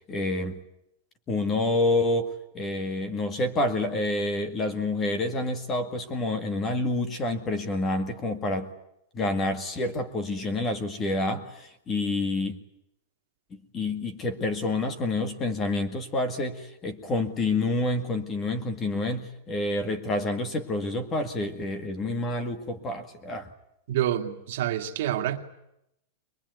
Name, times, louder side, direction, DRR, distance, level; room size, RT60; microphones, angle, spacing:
voice 1, 0.1-0.6 1.3-8.7 9.1-12.6 13.5-23.5, left 2 dB, 15° left, 2.0 m, -28 dB
voice 2, 23.9-25.4, right 12 dB, 55° right, 2.2 m, -27 dB
23.0 x 22.5 x 9.5 m
supercardioid pair, 175°, 0 cm